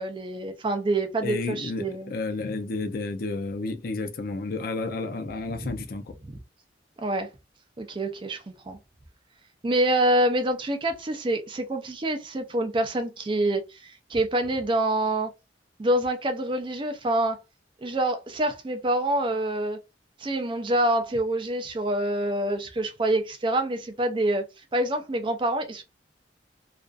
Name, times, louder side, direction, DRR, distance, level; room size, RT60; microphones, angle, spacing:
voice 1, 0.0-2.1 5.6-5.7 7.0-7.3 7.8-8.8 9.6-15.3 15.8-17.4 17.8-19.8 20.2-24.4 24.7-25.8, right 1 dB, 25° right, 0.4 m, -26 dB
voice 2, 1.2-6.2, left 3 dB, 50° left, 0.4 m, -31 dB
2.4 x 2.3 x 2.3 m
head